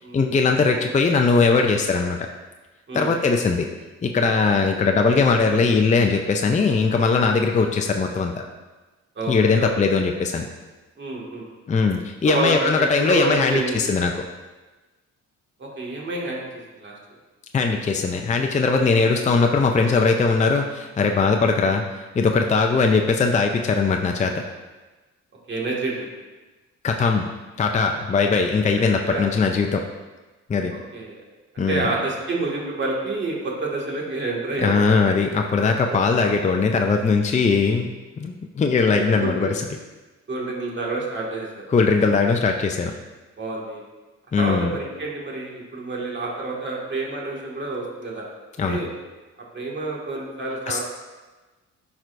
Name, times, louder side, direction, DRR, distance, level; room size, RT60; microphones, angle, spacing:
voice 1, 0.1-2.2 2.9-3.7 4.0-8.4 9.3-10.4 11.7-14.3 17.5-24.4 26.8-27.3 27.6-29.8 30.5-30.7 31.6-31.9 34.6-37.9 38.2-39.6 41.7-42.9 44.3-44.7 48.6-48.8 50.7-50.8, left 4 dB, 25° left, 3 dB, 0.5 m, -20 dB
voice 2, 9.2-9.7 11.0-11.5 12.2-13.8 15.6-16.4 16.7-16.9 25.5-26.1 28.8-29.2 30.7-31.2 31.7-35.0 35.9-36.0 38.9-39.5 40.3-41.6 43.4-43.8 44.4-48.3 48.7-48.9 49.5-50.8, right 2 dB, 40° right, -3 dB, 2.0 m, -28 dB
12.0 x 4.7 x 2.6 m, 1.2 s
cardioid pair, 90°, 30 cm